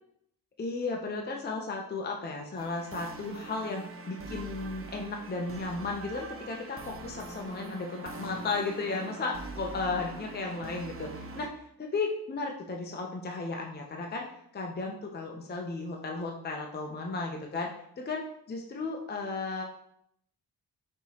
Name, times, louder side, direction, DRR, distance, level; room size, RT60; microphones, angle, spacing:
voice 1, 0.6-11.5 11.8-14.2 14.5-19.6, left 3 dB, 25° left, 1 dB, 0.7 m, -34 dB
sound 1, 2.6-11.5, right 3 dB, 35° right, 0.7 m, -43 dB
5.4 x 3.1 x 2.8 m, 0.71 s
supercardioid pair, 60°, 38 cm